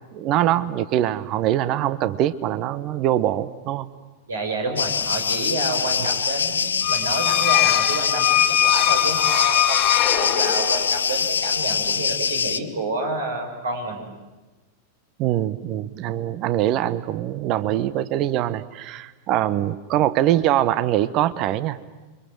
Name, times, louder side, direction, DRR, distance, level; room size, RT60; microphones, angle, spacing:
voice 1, 0.1-3.8 15.2-21.8, right 12 dB, 40° right, 16 dB, 1.0 m, -23 dB
voice 2, 4.3-14.1, right 2 dB, 70° right, 3 dB, 5.9 m, -29 dB
sound 1, 4.8-12.6, left 6 dB, 70° left, 1.0 m, -24 dB
sound 2, 6.8-11.0, left 13 dB, 40° left, 0.8 m, -21 dB
29.0 x 24.5 x 7.8 m, 1.2 s
figure-of-eight pair, 90°, 0 cm